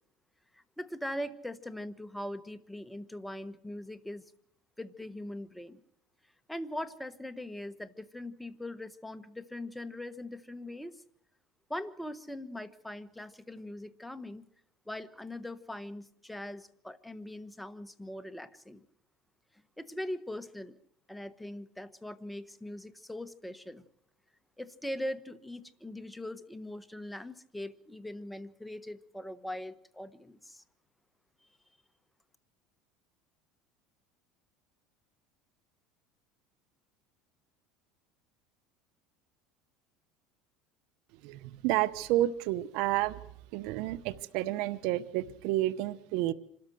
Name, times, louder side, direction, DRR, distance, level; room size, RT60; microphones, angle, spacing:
voice 1, 0.5-4.3 4.8-5.8 6.5-11.0 11.7-14.4 14.9-18.8 19.8-20.8 21.1-23.8 24.6-30.6, left 1 dB, 5° left, 12 dB, 1.3 m, -41 dB
voice 2, 41.2-43.2 43.5-46.3, right 15 dB, 70° right, 16 dB, 0.9 m, -30 dB
26.0 x 13.5 x 7.8 m, 0.68 s
supercardioid pair, 110°, 0 cm